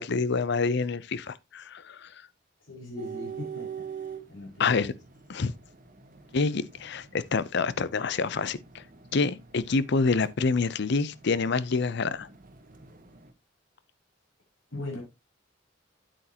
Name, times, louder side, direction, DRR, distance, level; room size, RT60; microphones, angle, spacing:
voice 1, 0.0-2.1 4.6-4.9 5.3-5.5 6.3-8.8 9.1-12.3, left 4 dB, 65° left, 0.6 m, -27 dB
voice 2, 2.7-3.8 4.3-5.0 14.7-15.0, left 2 dB, 85° left, 5.8 m, -39 dB
sound 1, 3.0-13.3, right 7 dB, 45° right, 1.3 m, -45 dB
9.1 x 8.3 x 2.8 m
head